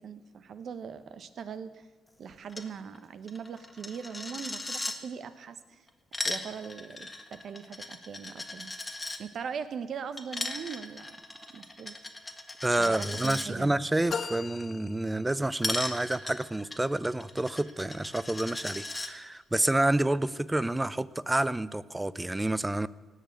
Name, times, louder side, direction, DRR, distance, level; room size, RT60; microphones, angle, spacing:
voice 1, 0.0-1.9 2.2-5.9 6.2-8.7 9.2-11.2 11.5-11.9 12.8-13.7, right 6 dB, 60° right, 12 dB, 1.0 m, -40 dB
Coin (dropping), 2.5-2.7 2.9-3.0 3.3-5.0 5.9-9.2 10.2-13.5 15.6-19.1, left 2 dB, 15° left, 1.5 m, -37 dB
voice 2, 12.6-22.9, right 1 dB, 10° right, 18 dB, 0.5 m, -29 dB
sound 1, 14.1-15.8, left 6 dB, 45° left, 0.9 m, -38 dB
17.5 x 6.8 x 9.2 m, 1.3 s
cardioid pair, 90°, 0 cm